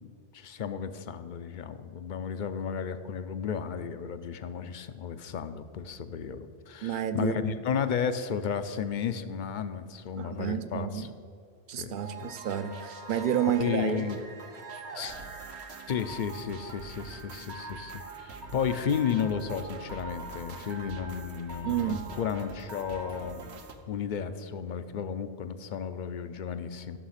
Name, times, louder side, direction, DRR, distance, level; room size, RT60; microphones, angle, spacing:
voice 1, 0.0-11.1 11.7-12.0 12.2-12.3 13.6-14.2 14.9-15.2 15.9-23.4 23.9-27.0, left 7 dB, 55° left, 11 dB, 0.7 m, -33 dB
voice 2, 6.8-7.5 10.2-11.1 11.7-14.1 21.6-22.0, right 9 dB, 55° right, 11 dB, 0.7 m, -30 dB
sound 1, 12.0-23.7, right 3 dB, 75° right, 1.3 m, -43 dB
13.0 x 6.2 x 5.7 m, 2.4 s
omnidirectional pair, 1.1 m